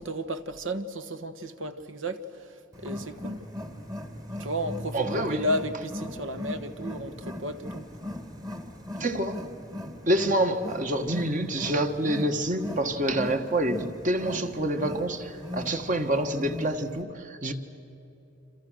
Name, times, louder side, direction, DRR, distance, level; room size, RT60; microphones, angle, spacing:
voice 1, 0.0-2.2 2.8-3.5 4.4-7.8, equal, 70° right, 1.4 m, -33 dB
Wild animals, 2.7-17.0, left 1 dB, 20° right, 1.6 m, -39 dB
voice 2, 4.9-5.5 9.0-9.5 10.1-17.5, right 1 dB, 40° right, 1.6 m, -27 dB
27.5 x 27.5 x 6.4 m
head